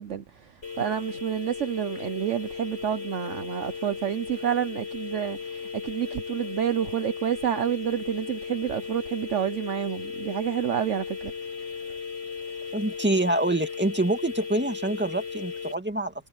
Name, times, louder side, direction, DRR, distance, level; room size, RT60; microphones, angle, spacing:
voice 1, 0.0-11.3, right 10 dB, 60° right, 1.0 m, -29 dB
Phone off the hook, 0.6-15.7, left 5 dB, 50° left, 6.8 m, -36 dB
voice 2, 12.7-16.1, right 1 dB, 10° right, 2.0 m, -26 dB
omnidirectional pair, 1.5 m